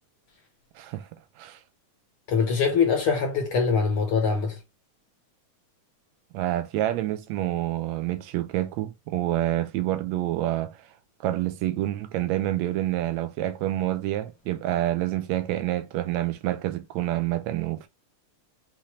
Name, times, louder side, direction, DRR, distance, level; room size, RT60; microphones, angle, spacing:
voice 1, 0.8-1.1 1.4-1.6 6.3-10.8 11.2-17.9, right 14 dB, 75° right, 1.8 m, -27 dB
voice 2, 2.3-4.6, left 5 dB, 65° left, 1.4 m, -23 dB
5.8 x 2.7 x 3.1 m
omnidirectional pair, 3.4 m